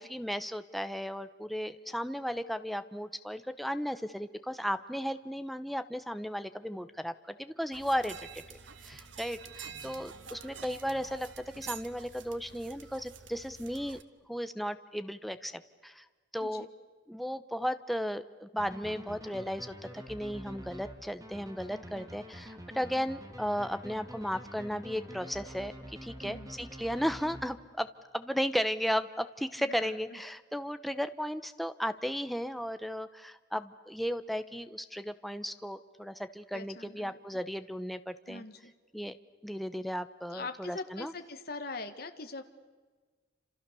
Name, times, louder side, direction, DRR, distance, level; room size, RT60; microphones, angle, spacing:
voice 1, 0.0-8.6 8.8-11.3 11.6-14.0 14.3-16.0 16.3-16.7 17.1-27.9 28.1-38.4 38.9-39.2 39.4-41.1, equal, ahead, 10 dB, 0.8 m, -35 dB
sound 1, 7.7-14.0, right 6 dB, 85° right, 1.5 m, -48 dB
sound 2, 18.6-27.9, equal, 20° right, 3.0 m, -47 dB
voice 2, 29.6-30.2 36.5-37.2 38.3-38.7 40.3-42.4, left 3 dB, 55° left, 7 dB, 1.9 m, -42 dB
29.0 x 27.5 x 7.0 m, 1.4 s
head